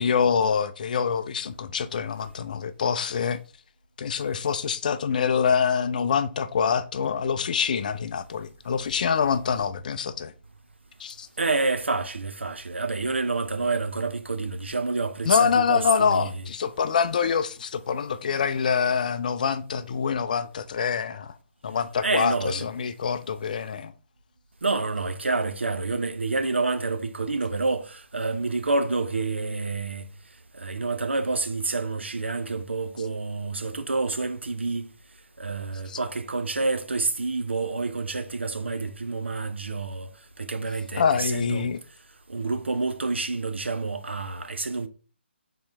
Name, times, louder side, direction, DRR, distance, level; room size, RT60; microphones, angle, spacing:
voice 1, 0.0-3.4 4.0-10.3 11.0-11.3 15.3-21.3 21.6-23.9 35.9-36.0 40.9-41.8, left 6 dB, 45° left, 0.4 m, -25 dB
voice 2, 11.4-16.4 22.0-22.7 24.6-30.1 30.5-34.9 35.4-41.7 42.3-44.9, right 3 dB, 75° right, 0.6 m, -28 dB
4.3 x 3.7 x 3.3 m
figure-of-eight pair, 140°, 6 cm